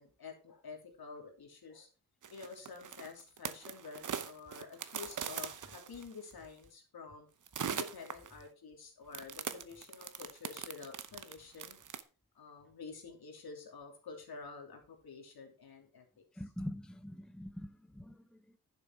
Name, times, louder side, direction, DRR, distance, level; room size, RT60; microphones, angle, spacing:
voice 1, 0.0-1.9 2.3-7.3 7.7-11.8 12.3-16.2, left 5 dB, 80° left, 2 dB, 3.0 m, -49 dB
sound 1, 2.2-6.3 7.5-8.4 9.1-12.0, right 8 dB, 55° right, 0.9 m, -41 dB
voice 2, 16.3-18.6, left 1 dB, ahead, 11 dB, 0.6 m, -44 dB
11.0 x 6.8 x 4.6 m, 0.35 s
wide cardioid pair, 140°, 36 cm